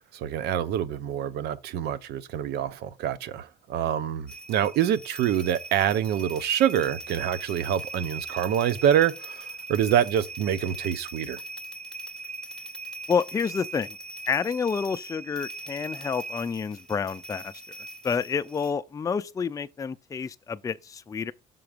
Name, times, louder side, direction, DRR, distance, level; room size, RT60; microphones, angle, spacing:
voice 1, 0.1-11.4, right 10 dB, 80° right, 0.7 m, -26 dB
sound 1, 4.3-18.7, right 2 dB, 5° left, 1.0 m, -40 dB
voice 2, 13.1-14.0 14.3-17.5 18.0-21.3, left 6 dB, 20° left, 0.4 m, -29 dB
6.9 x 3.8 x 5.0 m
cardioid pair, 110°, 17 cm